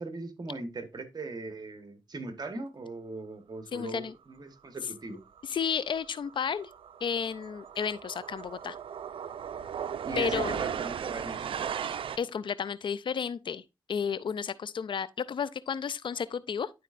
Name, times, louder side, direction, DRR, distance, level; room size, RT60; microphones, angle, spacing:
voice 1, 0.0-5.2 10.0-11.5, right 3 dB, 50° right, 1.2 m, -39 dB
voice 2, 3.7-4.1 5.4-6.7 7.0-8.8 10.2-10.6 12.2-13.6 13.9-16.7, left 7 dB, 65° left, 0.4 m, -32 dB
sound 1, 5.4-5.6 5.9-12.2, right 8 dB, 80° right, 0.4 m, -36 dB
11.0 x 4.2 x 2.5 m
cardioid pair, 50°, 9 cm